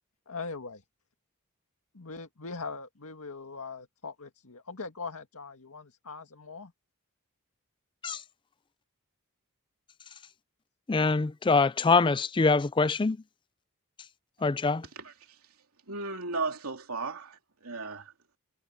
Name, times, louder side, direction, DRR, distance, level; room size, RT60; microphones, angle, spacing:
voice 1, 0.3-0.8 1.9-6.7, left 4 dB, 85° left, 1.9 m, -41 dB
voice 2, 10.9-13.2 14.4-14.8, left 4 dB, 20° left, 0.4 m, -24 dB
voice 3, 15.9-17.4 17.6-18.1, right 3 dB, 75° right, 3.0 m, -34 dB
head